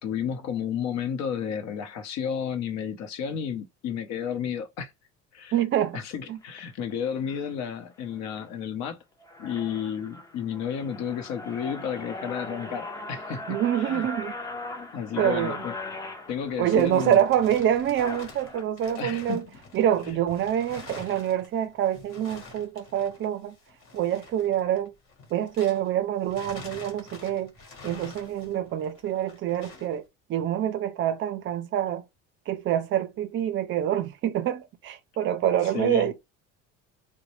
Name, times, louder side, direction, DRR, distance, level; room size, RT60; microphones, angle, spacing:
voice 1, 0.0-4.9 5.3-5.6 5.9-9.0 9.4-14.1 14.9-15.7 16.3-17.2 18.9-19.5 20.0-20.2 35.6-36.1, left 8 dB, 65° left, 0.8 m, -32 dB
voice 2, 5.5-6.0 6.3-6.4 13.5-14.4 15.2-15.6 16.6-19.4 19.7-23.6 23.9-24.9 25.3-27.5 27.8-30.0 30.3-32.0 32.5-36.1, right 10 dB, 40° right, 0.5 m, -26 dB
sound 1, 6.4-6.6 7.3-7.5 8.0-8.4 8.9-9.0 9.2-18.6, left 2 dB, 10° left, 0.5 m, -39 dB
sound 2, 16.4-25.9 26.2-30.0, left 4 dB, 45° left, 1.5 m, -47 dB
4.0 x 2.1 x 3.1 m
cardioid pair, 150°, 30 cm